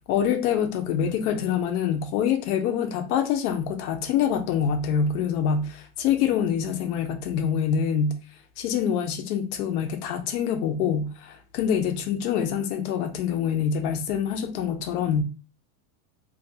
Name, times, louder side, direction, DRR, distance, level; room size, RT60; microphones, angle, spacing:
voice 1, 0.1-8.1 8.6-15.2, left 8 dB, 85° left, 0.6 m, -25 dB
2.4 x 2.3 x 2.7 m
cardioid pair, 175°, 45 cm